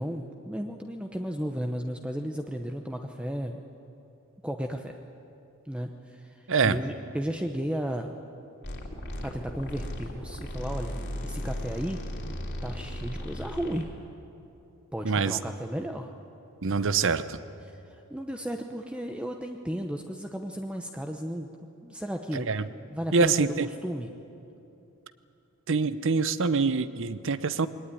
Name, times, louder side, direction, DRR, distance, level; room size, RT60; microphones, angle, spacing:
voice 1, 0.0-3.6 4.4-5.0 5.7-8.2 9.2-11.0 11.2-12.0 12.6-13.9 14.9-16.1 17.7-21.5 21.8-22.5 22.9-24.1, equal, 5° right, 4 dB, 0.8 m, -34 dB
voice 2, 6.5-6.8 15.0-15.4 16.6-17.4 22.3-22.7 23.1-23.7 25.7-27.7, right 4 dB, 60° right, 14 dB, 0.8 m, -25 dB
sound 1, 8.6-13.9, left 1 dB, 55° left, 3.1 m, -36 dB
22.0 x 18.5 x 9.9 m, 2.8 s
head